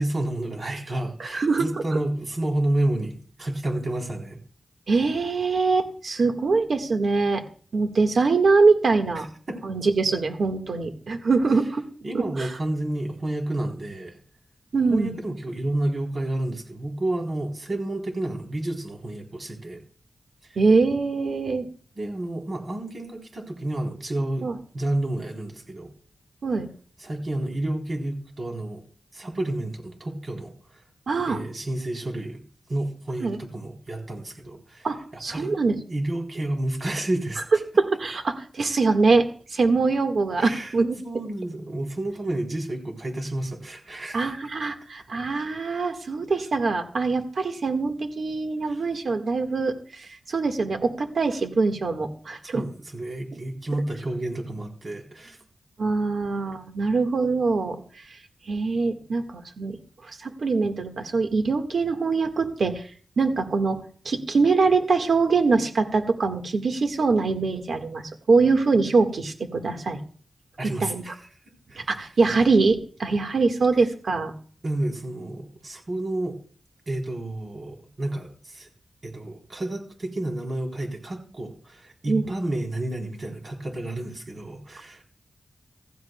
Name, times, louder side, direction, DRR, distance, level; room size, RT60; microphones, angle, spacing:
voice 1, 0.0-4.4 9.5-9.6 12.0-14.2 14.9-19.8 22.0-24.5 24.7-25.9 27.0-28.8 29.1-30.8 31.3-32.4 32.7-34.9 35.3-35.5 35.9-37.4 40.4-40.7 41.0-44.3 48.6-48.9 52.5-55.4 70.6-71.2 71.7-71.9 74.6-76.4 76.9-78.7 79.0-85.0, right 1 dB, 50° right, 1 dB, 3.9 m, -30 dB
voice 2, 1.2-1.8 4.9-7.4 7.7-9.3 9.6-11.8 12.4-12.5 14.7-15.2 20.6-21.7 24.4-24.6 26.4-26.7 31.1-31.4 33.2-33.4 34.8-35.7 37.8-39.3 39.5-41.0 44.1-52.6 55.8-57.8 58.5-59.8 60.0-62.9 63.2-70.0 70.8-71.0 71.8-74.3 82.1-82.2, right 4 dB, 70° right, 5 dB, 1.7 m, -23 dB
15.5 x 15.0 x 2.3 m, 0.43 s
cardioid pair, 70°, 0 cm